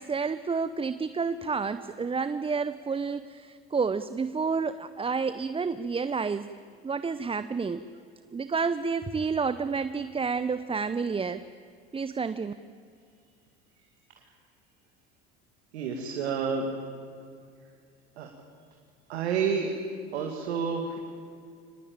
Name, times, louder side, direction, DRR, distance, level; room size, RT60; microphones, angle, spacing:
voice 1, 0.0-6.5 6.8-7.8 8.3-11.4 11.9-12.5, right 5 dB, 15° right, 13 dB, 0.7 m, -30 dB
voice 2, 15.7-16.7 18.2-18.3 19.1-19.7 20.1-21.0, right 6 dB, 85° right, 2 dB, 2.4 m, -29 dB
24.5 x 19.5 x 8.9 m, 2.3 s
hypercardioid pair, 75°, 32 cm